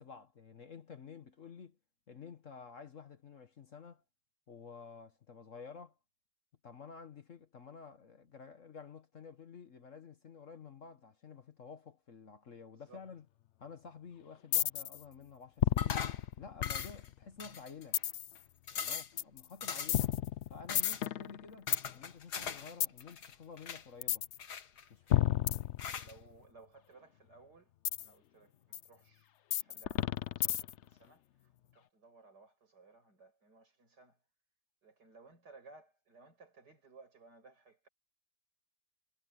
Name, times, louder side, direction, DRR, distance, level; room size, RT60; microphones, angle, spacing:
voice 1, 0.0-1.8 2.1-4.0 4.5-5.9 6.6-13.2 13.6-16.0 16.4-18.0 18.8-20.1 20.5-24.3 24.9-25.3, left 5 dB, 50° left, 1.5 m, -51 dB
voice 2, 12.7-13.0 18.7-19.0 25.3-25.7 26.0-27.7 28.0-34.2 34.8-37.9, right 3 dB, 70° right, 7.0 m, -60 dB
sound 1, 14.5-15.0 15.6-17.2 17.9-18.4 19.2-19.4 19.9-21.9 22.8-23.0 24.0-24.4 25.1-26.3 27.9-28.1 28.7-28.8 29.5-30.9, left 12 dB, 90° left, 0.6 m, -32 dB
sound 2, 15.8-16.2 16.6-17.1 17.4-18.0 18.4-18.5 18.7-19.2 19.6-20.1 20.7-21.0 21.7-22.7 23.0-23.8 24.4-25.1 25.8-26.1, left 7 dB, 65° left, 1.9 m, -40 dB
omnidirectional pair, 1.9 m